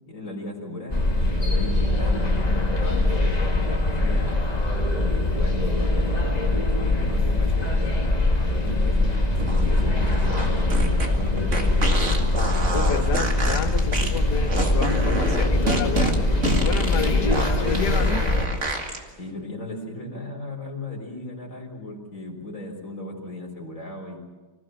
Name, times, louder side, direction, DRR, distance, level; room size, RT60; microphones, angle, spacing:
voice 1, 0.1-2.4 2.8-4.4 5.0-8.0 8.4-12.1 16.9-17.1 19.2-24.2, left 1 dB, 50° left, 0 dB, 4.8 m, -36 dB
sound 1, 0.9-18.5, left 2 dB, 25° left, 2.1 m, -22 dB
sound 2, 9.3-19.0, right 2 dB, 45° right, 2.4 m, -28 dB
voice 2, 12.7-16.2 16.6-18.2, left 8 dB, 75° left, 10 dB, 1.6 m, -31 dB
26.0 x 16.5 x 7.6 m, 1.3 s
omnidirectional pair, 1.8 m